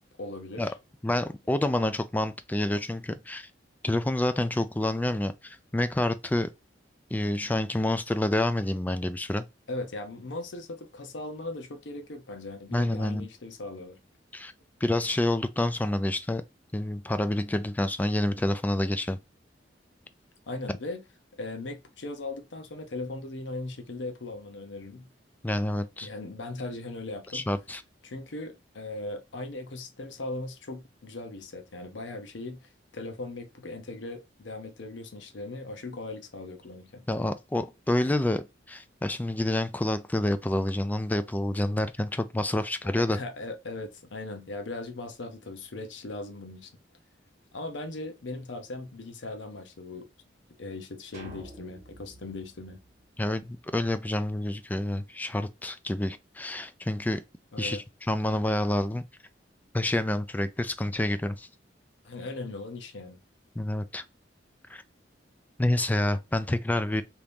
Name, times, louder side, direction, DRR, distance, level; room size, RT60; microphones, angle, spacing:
voice 1, 0.2-0.7 9.7-14.0 20.5-21.0 21.3-25.1 26.0-27.5 28.0-37.0 43.0-46.7 47.5-50.1 50.6-52.8 57.5-57.8 62.0-63.2, left 2 dB, 80° left, 0.7 m, -38 dB
voice 2, 1.0-3.5 3.8-6.5 7.1-9.4 12.7-13.3 14.3-14.5 14.8-16.4 16.7-19.2 25.4-26.1 27.3-27.8 37.1-43.2 53.2-57.2 57.6-59.0 59.7-61.5 63.6-64.0 64.7-64.8 65.6-67.0, left 1 dB, 10° left, 0.3 m, -28 dB
sound 1, 51.1-53.6, right 1 dB, 40° right, 1.4 m, -49 dB
2.9 x 2.6 x 3.4 m
head